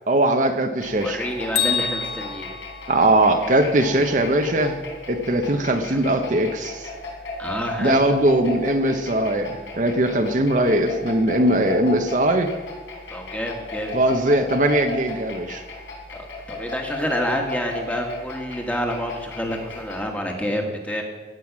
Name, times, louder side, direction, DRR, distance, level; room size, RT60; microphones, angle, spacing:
voice 1, 0.1-1.2 2.9-4.8 5.1-6.9 7.8-12.5 13.9-15.6, right 1 dB, 45° right, 5 dB, 0.8 m, -20 dB
sound 1, 0.8-20.1, left 2 dB, 80° left, 3.6 m, -35 dB
voice 2, 1.0-2.6 5.9-6.0 7.4-8.0 13.1-14.0 16.1-21.0, equal, 10° left, 2 dB, 1.6 m, -28 dB
Bell, 1.5-3.6, left 7 dB, 60° left, 2.0 m, -27 dB
16.0 x 7.9 x 6.0 m, 1.4 s
head